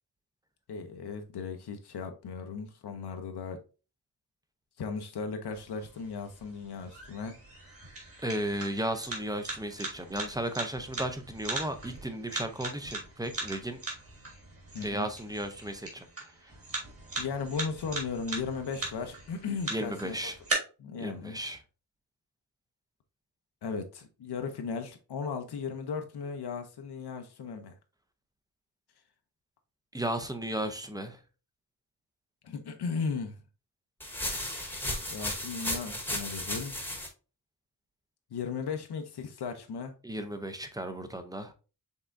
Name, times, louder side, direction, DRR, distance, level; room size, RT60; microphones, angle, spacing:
voice 1, 0.7-3.6 4.8-7.4 14.7-15.1 17.2-20.1 20.8-21.4 23.6-27.7 32.4-33.4 35.1-36.8 38.3-39.9, left 5 dB, 80° left, 0.7 m, -36 dB
sound 1, 5.5-20.5, right 3 dB, 35° right, 1.6 m, -40 dB
voice 2, 8.2-13.8 14.8-16.1 16.4-16.5 19.7-20.4 21.0-21.6 29.9-31.2 40.0-41.5, right 1 dB, 10° right, 0.4 m, -35 dB
sound 2, 34.0-37.1, left 1 dB, 5° left, 0.9 m, -34 dB
5.5 x 3.5 x 2.5 m
wide cardioid pair, 180°, 39 cm